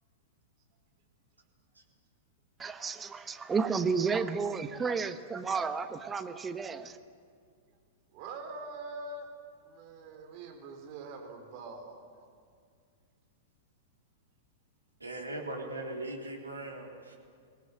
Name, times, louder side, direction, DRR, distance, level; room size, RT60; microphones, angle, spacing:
voice 1, 2.6-7.0, right 5 dB, 15° right, 9 dB, 1.2 m, -32 dB
voice 2, 8.1-9.3 9.6-12.3, right 3 dB, 40° right, 3 dB, 4.4 m, -44 dB
voice 3, 15.0-17.2, right 2 dB, 80° right, 0 dB, 3.5 m, -39 dB
24.0 x 18.0 x 8.1 m, 2.1 s
figure-of-eight pair, 100°, 0 cm